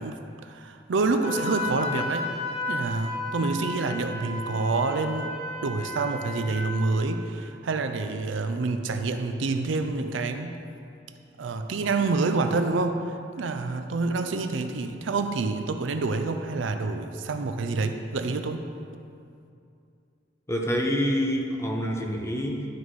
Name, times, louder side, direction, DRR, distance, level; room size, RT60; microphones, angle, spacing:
voice 1, 0.0-2.3 2.7-5.3 5.6-10.6 11.4-18.7, right 3 dB, 70° right, 7 dB, 0.5 m, -27 dB
Wind instrument woodwind instrument, 1.2-7.0, left 2 dB, 35° left, 1.9 m, -34 dB
voice 2, 20.5-22.7, equal, 15° left, 0 dB, 0.7 m, -27 dB
11.5 x 4.1 x 4.7 m, 2.5 s
head